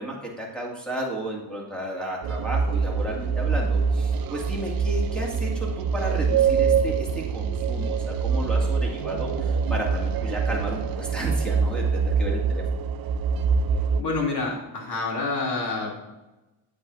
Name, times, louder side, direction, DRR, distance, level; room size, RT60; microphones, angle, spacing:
voice 1, 0.0-7.1 7.3-12.6, right 1 dB, ahead, -4 dB, 2.2 m, -33 dB
sound 1, 2.2-14.0, right 5 dB, 50° right, 0.6 m, -24 dB
voice 2, 14.0-16.0, left 3 dB, 55° left, -2 dB, 2.9 m, -28 dB
8.7 x 8.1 x 2.6 m, 1.1 s
cardioid pair, 105°, 48 cm